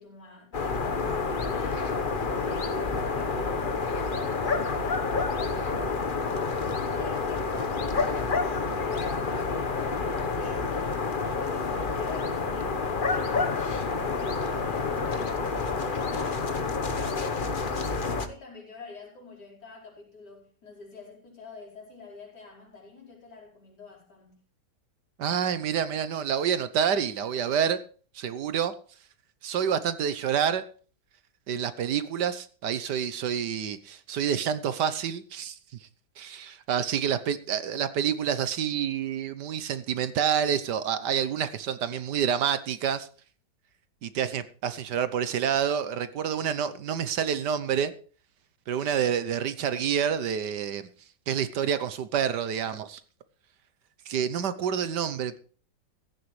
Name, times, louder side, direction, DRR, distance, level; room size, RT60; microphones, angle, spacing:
voice 1, 0.0-6.3 6.7-9.5 9.8-14.8 15.1-24.3, left 4 dB, 65° left, 5.4 m, -47 dB
sound 1, 0.5-18.3, left 4 dB, 35° left, 1.1 m, -28 dB
voice 2, 25.2-27.8 28.1-28.7 29.4-30.6 31.5-35.6 36.2-43.1 44.0-47.9 48.7-50.9 51.3-53.0 54.1-55.4, right 8 dB, 70° right, 1.5 m, -28 dB
15.5 x 13.5 x 3.2 m
omnidirectional pair, 1.9 m